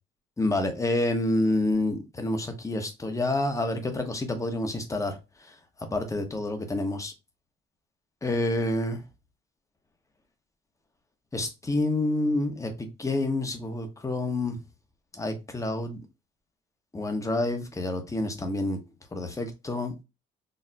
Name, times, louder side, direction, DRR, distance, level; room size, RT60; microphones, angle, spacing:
voice 1, 0.4-5.5 5.9-7.1 8.2-9.0 11.3-14.6 15.1-16.0 16.9-18.8 19.1-19.9, left 2 dB, 15° left, 0.7 m, -28 dB
4.0 x 2.0 x 2.2 m
cardioid pair, 90°, 20 cm